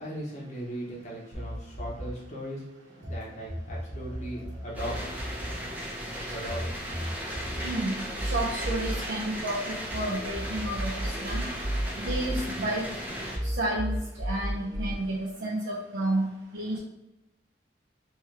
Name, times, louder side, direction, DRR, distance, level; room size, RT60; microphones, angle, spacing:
voice 1, 0.0-2.7 3.0-5.0 6.2-6.7, equal, 40° left, -6 dB, 1.1 m, -38 dB
sound 1, 1.3-3.1 3.4-10.0 10.3-13.0 13.3-15.0, right 1 dB, 40° right, 1.0 m, -34 dB
sound 2, 4.7-13.4, equal, 10° right, 0.8 m, -36 dB
voice 2, 7.6-11.4 12.0-12.8 13.4-16.8, right 1 dB, 85° right, -4 dB, 0.6 m, -31 dB
3.4 x 3.2 x 3.3 m, 0.95 s
head